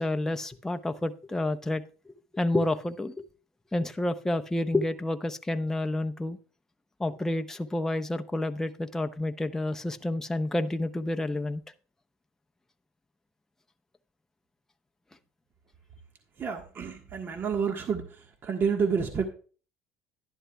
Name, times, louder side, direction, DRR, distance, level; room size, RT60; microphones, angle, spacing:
voice 1, 0.0-3.2 3.7-6.4 7.0-11.6, left 1 dB, 10° left, 7 dB, 0.7 m, -29 dB
voice 2, 16.4-19.3, right 6 dB, 40° right, 4 dB, 1.4 m, -29 dB
11.0 x 11.0 x 2.3 m, 0.38 s
supercardioid pair, 100°, 6 cm